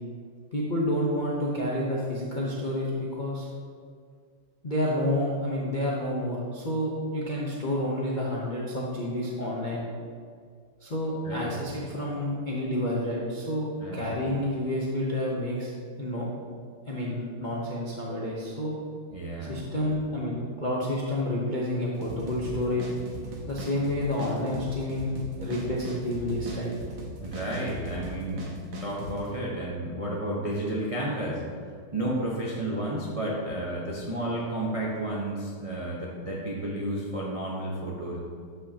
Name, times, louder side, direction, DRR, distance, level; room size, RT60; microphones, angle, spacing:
voice 1, 0.5-3.5 4.6-9.9 10.8-13.7 13.9-15.7 16.0-16.2 16.9-18.8 19.5-22.8 23.5-26.7, left 1 dB, 55° left, -5 dB, 0.5 m, -29 dB
voice 2, 13.8-14.1 19.1-19.7 27.2-31.4 31.9-38.2, right 1 dB, 55° right, -4 dB, 0.3 m, -32 dB
sound 1, 22.0-29.3, right 1 dB, 70° right, 1.8 m, -38 dB
12.0 x 5.6 x 2.9 m, 2.1 s
omnidirectional pair, 2.4 m